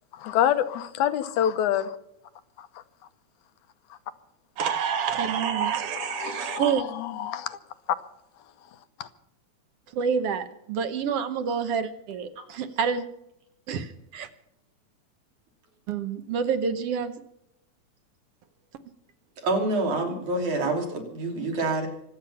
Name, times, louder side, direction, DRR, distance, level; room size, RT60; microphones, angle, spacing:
voice 1, 0.1-2.0 2.6-2.7 6.1-6.7 6.9-7.6 9.0-9.1, left 10 dB, 85° left, 2.4 m, -26 dB
voice 2, 4.6-6.9 9.9-13.1 13.7-14.3 15.9-17.2, right 7 dB, 65° right, 1.8 m, -28 dB
voice 3, 19.4-21.9, right 2 dB, 80° right, 4.5 m, -27 dB
25.0 x 8.8 x 5.7 m
omnidirectional pair, 3.3 m